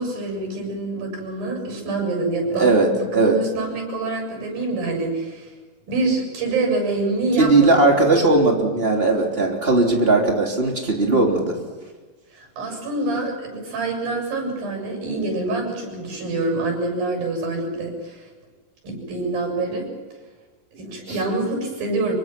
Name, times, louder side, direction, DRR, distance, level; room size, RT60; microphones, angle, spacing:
voice 1, 0.0-5.5 5.9-7.9 12.3-18.3 18.8-19.9 20.7-22.2, right 2 dB, 85° right, 3 dB, 9.1 m, -26 dB
voice 2, 2.6-2.9 3.1-3.4 7.4-11.6, right 2 dB, 15° right, 0 dB, 3.2 m, -18 dB
26.0 x 23.5 x 6.0 m, 1.3 s
omnidirectional pair, 4.0 m